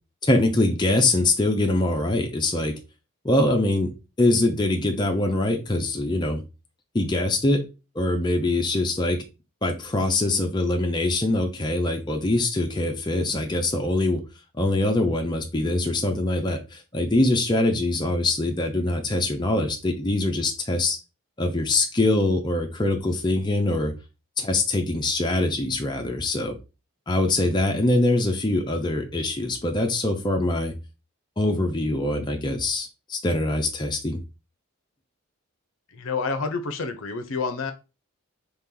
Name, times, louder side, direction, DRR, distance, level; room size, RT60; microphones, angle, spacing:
voice 1, 0.3-2.7 3.2-3.9 4.2-6.4 6.9-7.6 7.9-9.2 9.6-14.2 14.6-21.0 21.4-23.9 24.4-26.6 27.1-30.7 31.4-34.2, left 2 dB, 20° left, 3 dB, 0.5 m, -23 dB
voice 2, 35.9-37.7, left 4 dB, 60° left, 8 dB, 0.6 m, -28 dB
3.4 x 2.9 x 3.8 m, 0.29 s
head